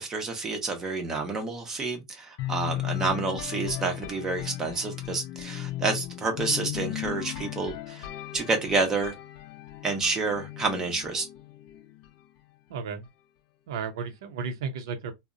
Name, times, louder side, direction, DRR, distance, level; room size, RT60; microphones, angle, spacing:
voice 1, 0.0-8.1 8.3-9.1 9.8-11.3, right 3 dB, 20° right, 0.6 m, -29 dB
sound 1, 2.4-12.2, left 14 dB, 55° left, 0.4 m, -36 dB
voice 2, 12.7-13.0 13.7-15.1, right 5 dB, 80° right, 0.6 m, -33 dB
2.7 x 2.0 x 2.4 m
supercardioid pair, 135°, 2 cm